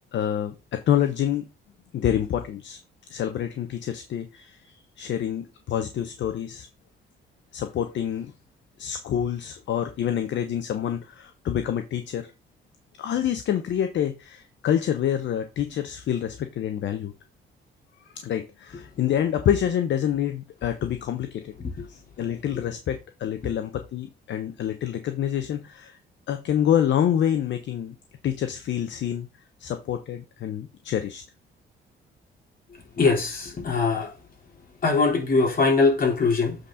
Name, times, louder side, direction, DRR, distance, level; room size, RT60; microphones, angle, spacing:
voice 1, 0.1-1.5 1.9-2.8 3.1-6.7 7.5-8.3 8.8-12.3 13.0-17.1 18.1-21.5 21.9-26.0 26.3-27.9 28.2-29.3 29.6-31.2, left 10 dB, 65° left, 0.8 m, -27 dB
voice 2, 33.0-34.1 34.8-36.6, left 4 dB, 45° left, 3.3 m, -21 dB
8.0 x 4.2 x 3.8 m
cardioid pair, 90°, 20 cm